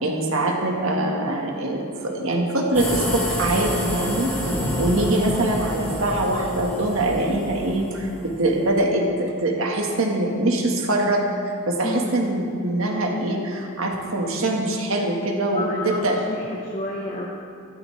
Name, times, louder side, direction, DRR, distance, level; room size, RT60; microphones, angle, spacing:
voice 1, 0.0-4.5 4.8-16.2, right 1 dB, 70° right, 1 dB, 1.6 m, -23 dB
sound 1, 2.7-8.8, equal, 5° left, 3.3 m, -29 dB
sound 2, 4.4-6.0, equal, 85° right, 3.4 m, -31 dB
voice 2, 11.8-12.2 15.5-17.3, left 2 dB, 30° left, -4 dB, 1.0 m, -31 dB
15.0 x 12.0 x 3.3 m, 2.4 s
head